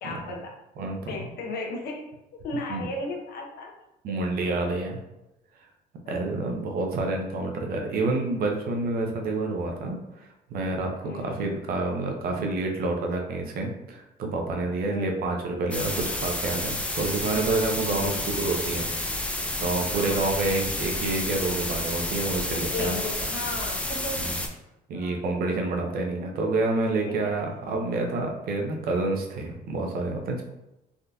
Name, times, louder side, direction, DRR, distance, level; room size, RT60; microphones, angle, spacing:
voice 1, 0.0-0.5 1.1-2.1 2.4-3.7 6.0-6.2 11.0-11.4 14.9-15.2 17.9-18.2 19.9-20.5 22.7-24.3 24.9-25.2 27.1-27.4, left 3 dB, 70° left, 1 dB, 0.7 m, -35 dB
voice 2, 0.8-1.2 2.7-2.9 4.0-5.0 6.1-18.9 19.6-22.9 24.2-24.3 24.9-30.4, right 2 dB, 60° right, 2 dB, 0.7 m, -28 dB
sound 1, 15.7-24.5, left 1 dB, 5° left, 0.4 m, -30 dB
3.6 x 2.6 x 2.3 m, 0.92 s
cardioid pair, 110°, 17 cm